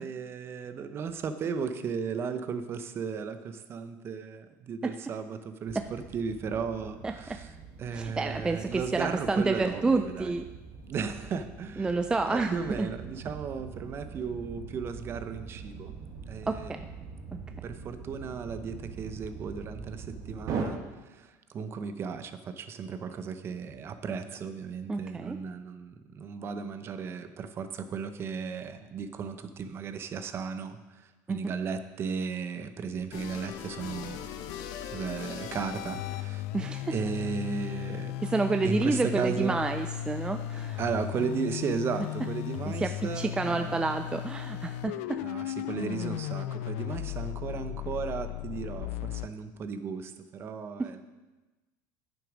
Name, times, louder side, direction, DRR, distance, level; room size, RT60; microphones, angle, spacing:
voice 1, 0.0-7.5 7.8-10.4 10.9-12.0 12.3-15.9 16.3-16.7 17.6-34.3 34.9-36.4 36.9-38.2 38.6-39.6 40.8-44.0 45.2-51.0, right 6 dB, 35° right, 10 dB, 0.7 m, -35 dB
sound 1, 5.7-20.6, right 5 dB, 50° right, 1.4 m, -42 dB
voice 2, 7.0-7.4 7.9-10.4 11.8-12.9 16.5-16.8 24.9-25.4 31.3-31.4 36.5-36.9 38.2-40.8 42.8-45.2 50.8-50.9, right 3 dB, 10° right, 7 dB, 0.3 m, -29 dB
sound 2, 33.1-36.5, left 10 dB, 65° left, 0.8 m, -40 dB
sound 3, 36.0-49.3, left 13 dB, 85° left, 0.4 m, -36 dB
9.1 x 7.2 x 5.1 m, 1.2 s
supercardioid pair, 125°, 7 cm